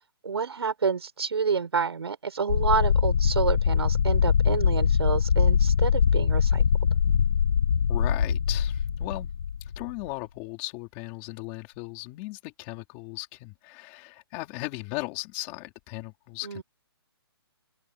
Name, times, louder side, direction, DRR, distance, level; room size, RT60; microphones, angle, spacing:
voice 1, 0.2-6.6 16.4-16.6, right 5 dB, 75° right, 6.4 m, -28 dB
sound 1, 2.5-10.1, left 7 dB, 45° left, 1.0 m, -23 dB
voice 2, 7.9-9.3 9.6-16.6, left 22 dB, 15° left, 3.8 m, -37 dB
open air
hypercardioid pair, 175°, 13 cm